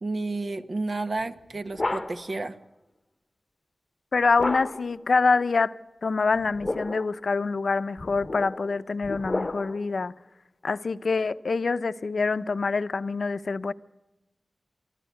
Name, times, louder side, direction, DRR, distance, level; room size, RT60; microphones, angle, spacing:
voice 1, 0.0-2.6, right 2 dB, 55° right, 1.3 m, -31 dB
sound 1, 1.2-2.4 4.4-5.0 6.4-7.2 8.0-9.9, left 2 dB, 30° left, 0.9 m, -32 dB
voice 2, 4.1-5.7 6.0-10.1 10.6-13.7, left 4 dB, 70° left, 0.7 m, -25 dB
25.0 x 14.0 x 9.5 m
wide cardioid pair, 85°, 0 cm